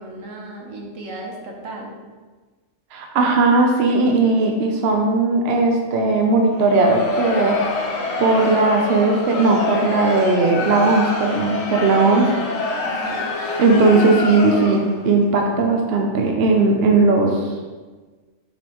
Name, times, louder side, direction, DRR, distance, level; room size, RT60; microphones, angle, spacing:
voice 1, 0.0-1.9 12.8-13.3, right 2 dB, 70° right, 0 dB, 1.4 m, -35 dB
voice 2, 2.9-7.6 8.2-12.3 13.6-17.5, right 3 dB, 55° right, 1 dB, 0.9 m, -17 dB
Crowd, 6.5-15.0, left 2 dB, 80° left, 1.3 m, -26 dB
6.9 x 5.2 x 3.0 m, 1.3 s
omnidirectional pair, 1.4 m